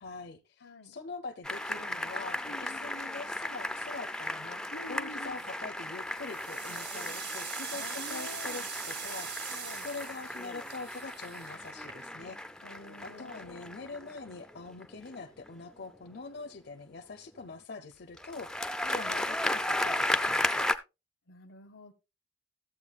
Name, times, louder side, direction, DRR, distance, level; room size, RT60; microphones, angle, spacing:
voice 1, 0.0-4.6 4.9-9.5 9.8-12.4 13.0-20.7, left 3 dB, 60° left, 0.7 m, -44 dB
voice 2, 0.6-1.0 2.5-2.9 4.7-5.4 7.7-8.7 9.5-9.9 12.6-13.7 18.8-19.1 21.3-21.9, left 2 dB, 80° left, 1.0 m, -48 dB
sound 1, 1.4-15.5 18.2-20.8, left 1 dB, 5° left, 0.4 m, -35 dB
sound 2, 5.2-5.6 6.1-12.4, right 7 dB, 60° right, 1.7 m, -42 dB
14.0 x 8.0 x 2.4 m
head